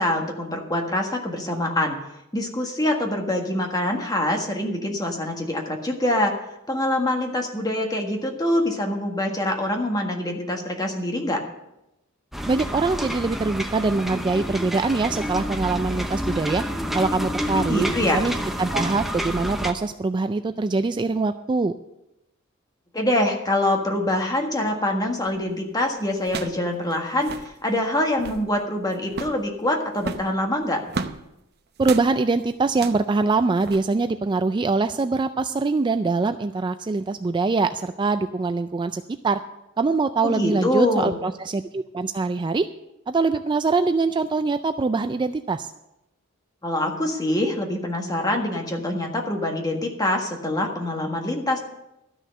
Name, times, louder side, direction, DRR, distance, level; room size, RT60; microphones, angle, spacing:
voice 1, 0.0-2.0 2.3-6.4 6.7-11.4 17.5-18.2 22.9-30.8 40.2-41.2 46.6-51.6, left 1 dB, 20° left, 2 dB, 1.6 m, -25 dB
sound 1, 12.3-19.7, equal, ahead, 0.8 m, -29 dB
voice 2, 12.5-16.6 16.9-21.7 31.8-39.4 39.8-42.7 43.1-45.7, right 3 dB, 20° right, 9 dB, 0.3 m, -23 dB
sound 2, 25.3-25.5 26.2-26.6 26.9-27.0 27.2-27.5 28.0-28.5 29.1-29.4 30.0-31.2 31.8-32.1 32.7-33.1 33.6-33.8, right 4 dB, 50° right, 0.8 m, -33 dB
13.0 x 6.3 x 7.7 m, 0.90 s
head